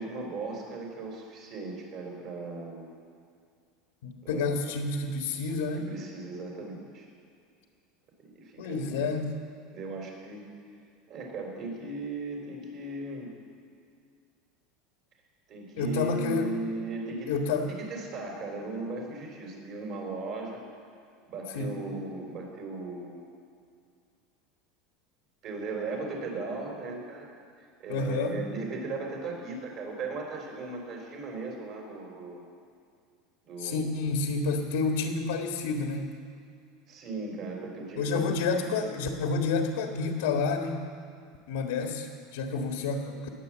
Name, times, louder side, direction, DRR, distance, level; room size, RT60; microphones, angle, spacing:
voice 1, 0.0-2.9 4.2-4.6 5.7-7.1 8.2-9.1 9.7-10.5 11.1-13.3 15.5-17.3 17.7-20.6 21.3-23.2 25.4-27.3 27.6-32.4 33.4-34.0 36.9-38.6, right 3 dB, 40° right, 0 dB, 3.9 m, -37 dB
voice 2, 4.0-5.8 8.6-9.3 15.8-16.5 17.3-17.7 21.5-21.8 27.9-28.4 33.6-36.1 38.0-40.8 41.5-43.2, left 4 dB, 90° left, 3 dB, 1.6 m, -29 dB
19.0 x 8.6 x 7.5 m, 2.3 s
supercardioid pair, 160°, 0 cm